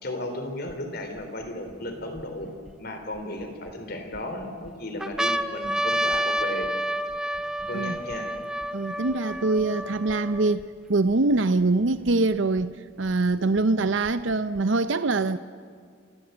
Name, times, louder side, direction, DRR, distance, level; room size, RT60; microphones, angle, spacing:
voice 1, 0.0-2.5 2.8-6.7 7.7-8.3, left 1 dB, 50° left, 3.6 m, -35 dB
sound 1, 0.7-0.8 1.4-2.7 3.4-4.2 4.7-4.8 5.0-10.6 11.3-11.4 11.6-12.6 13.6-14.6, right 1 dB, 5° right, 0.5 m, -30 dB
voice 2, 8.7-15.4, right 3 dB, 65° right, 0.7 m, -24 dB
28.0 x 15.5 x 8.1 m
head